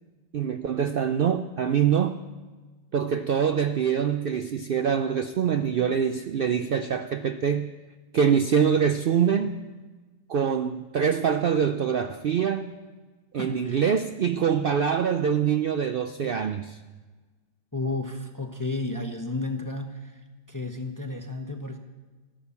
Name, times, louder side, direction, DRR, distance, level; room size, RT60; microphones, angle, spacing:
voice 1, 0.3-2.1 2.9-7.7 8.1-9.5 10.3-12.7 13.3-16.8, right 7 dB, 90° right, 8 dB, 0.5 m, -24 dB
voice 2, 13.3-13.9 17.7-21.8, left 2 dB, 15° left, 4 dB, 0.7 m, -33 dB
14.0 x 11.0 x 7.1 m, 1.3 s
omnidirectional pair, 1.6 m